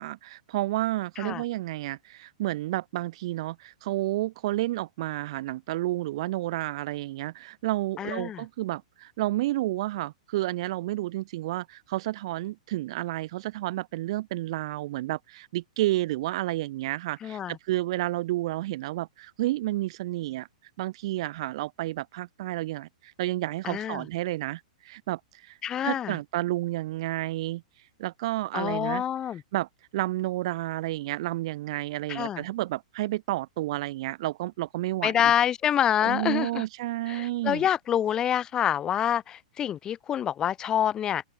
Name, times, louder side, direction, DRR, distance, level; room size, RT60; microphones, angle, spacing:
voice 1, 0.0-20.5 20.8-25.6 25.8-27.6 28.0-29.0 29.5-35.3 36.0-37.7, right 16 dB, 45° right, 3.6 m, -31 dB
voice 2, 8.0-8.4 17.2-17.6 23.6-24.0 25.6-26.2 28.5-29.4 32.1-32.4 35.0-36.6 37.1-41.2, left 10 dB, 15° left, 3.3 m, -27 dB
hypercardioid pair, 165°, 4 cm